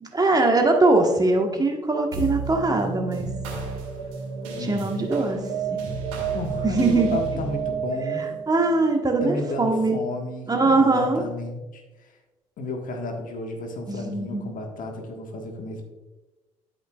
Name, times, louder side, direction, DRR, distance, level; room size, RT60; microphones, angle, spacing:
voice 1, 0.0-3.3 4.6-5.8 6.6-7.2 8.2-10.0 10.5-11.2 13.9-14.5, right 2 dB, 25° right, 3 dB, 1.3 m, -22 dB
sound 1, 2.1-10.8, right 6 dB, 80° right, 1.5 m, -31 dB
voice 2, 4.6-5.0 6.3-8.3 9.2-11.8 12.6-15.9, left 2 dB, 55° left, 2 dB, 1.5 m, -32 dB
12.0 x 5.1 x 2.4 m, 1.1 s
hypercardioid pair, 50°, 17 cm